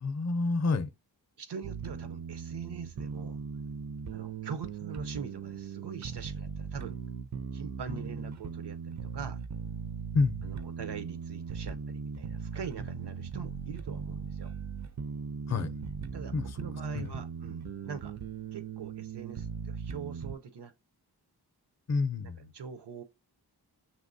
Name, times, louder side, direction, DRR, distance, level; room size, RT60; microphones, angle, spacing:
voice 1, 0.0-0.9 10.1-10.5 15.5-15.7 16.3-17.1 21.9-22.5, left 4 dB, 40° left, 0.6 m, -29 dB
voice 2, 1.4-3.4 4.1-7.0 7.5-9.4 10.4-14.5 16.1-18.1 18.5-20.7 22.2-23.0, right 6 dB, 85° right, 0.8 m, -43 dB
sound 1, 1.6-20.3, right 6 dB, 45° right, 0.5 m, -39 dB
5.7 x 3.0 x 2.6 m
wide cardioid pair, 95°, 40 cm